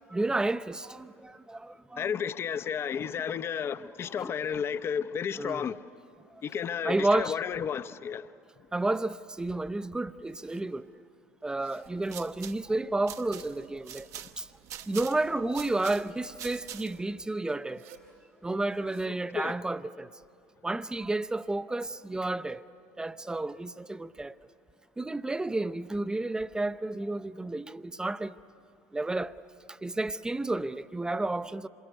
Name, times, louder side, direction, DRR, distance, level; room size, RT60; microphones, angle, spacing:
voice 1, 0.1-2.1 4.2-4.3 5.4-5.7 6.8-7.4 8.7-10.9 11.4-14.1 14.4-14.5 14.9-17.8 18.4-20.1 20.6-22.6 23.0-24.4 25.0-28.4 28.9-29.3 29.7-31.7, right 2 dB, 10° right, 0.7 m, -31 dB
voice 2, 2.0-5.9 6.4-8.3 19.3-19.6, left 7 dB, 35° left, 0.8 m, -32 dB
Zipper (clothing), 10.2-10.8 11.4-12.0 13.0-13.7 14.3-15.3 16.4-17.0 17.7-18.1 18.6-19.2, right 7 dB, 70° right, 2.6 m, -59 dB
sound 1, 11.8-17.1, right 10 dB, 45° right, 1.0 m, -45 dB
27.0 x 22.0 x 9.3 m
figure-of-eight pair, 65°, 7 cm